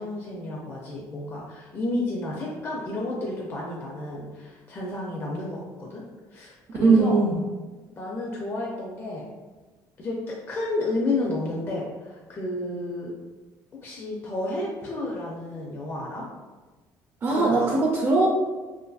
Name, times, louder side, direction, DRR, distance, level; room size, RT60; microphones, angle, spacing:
voice 1, 0.0-6.0 6.3-7.2 7.9-9.2 10.0-13.1 13.8-16.3 17.3-17.8, left 2 dB, 30° left, -3 dB, 0.4 m, -31 dB
voice 2, 6.8-7.3 17.2-18.3, right 3 dB, 35° right, -2 dB, 0.4 m, -20 dB
2.6 x 2.5 x 2.3 m, 1.3 s
cardioid pair, 130°, 8 cm